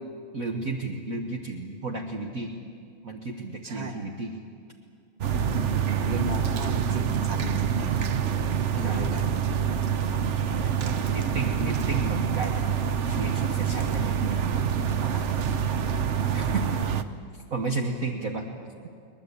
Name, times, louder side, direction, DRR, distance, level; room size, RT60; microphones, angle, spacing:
voice 1, 0.3-2.6 3.0-4.4 8.8-9.1 10.2-14.5 15.0-15.4 16.3-16.7 17.3-18.5, right 3 dB, 45° right, 1 dB, 1.5 m, -33 dB
voice 2, 3.6-3.9 5.4-8.0 8.8-9.6, right 2 dB, 20° right, 4 dB, 1.8 m, -35 dB
sound 1, 5.2-17.0, right 8 dB, 75° right, 0.6 m, -26 dB
22.0 x 20.5 x 8.4 m, 2.3 s
omnidirectional pair, 2.3 m